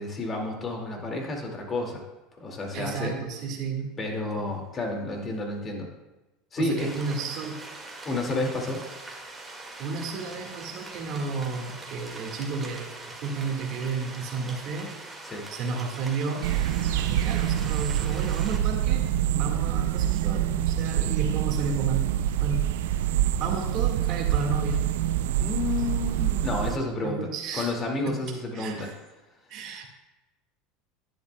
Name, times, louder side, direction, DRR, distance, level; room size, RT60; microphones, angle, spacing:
voice 1, 0.0-2.0 2.4-3.2 4.0-5.9 6.5-6.9 8.0-8.8 15.2-15.4 25.4-27.3 27.5-28.9, left 2 dB, 30° left, 1 dB, 2.2 m, -30 dB
voice 2, 2.7-4.0 6.6-7.7 9.8-14.9 15.5-16.5 17.0-19.1 19.3-22.1 22.4-22.7 23.4-24.9 27.0-27.8 28.1-28.9 29.5-29.9, right 4 dB, 55° right, 3 dB, 1.8 m, -32 dB
sound 1, 6.8-18.6, right 2 dB, 15° right, 2.0 m, -42 dB
sound 2, 16.4-26.8, right 11 dB, 80° right, 0.4 m, -26 dB
11.5 x 10.0 x 2.3 m, 1.0 s
supercardioid pair, 100°, 0 cm